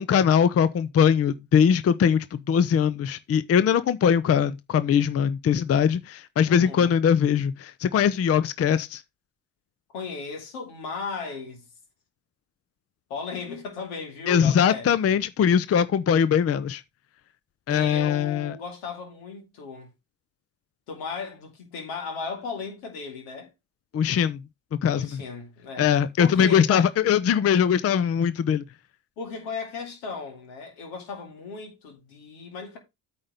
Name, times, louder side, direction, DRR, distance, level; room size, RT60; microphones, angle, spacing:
voice 1, 0.0-9.0 14.3-16.8 17.7-18.6 23.9-24.4 24.8-25.1 25.8-28.6, left 8 dB, 30° left, 0.6 m, -21 dB
voice 2, 6.5-6.9 9.9-11.7 13.1-15.1 17.7-19.9 20.9-23.5 24.9-25.9 26.2-26.9 29.2-32.8, left 4 dB, 75° left, 2.6 m, -36 dB
8.8 x 4.1 x 5.1 m
hypercardioid pair, 55°, 49 cm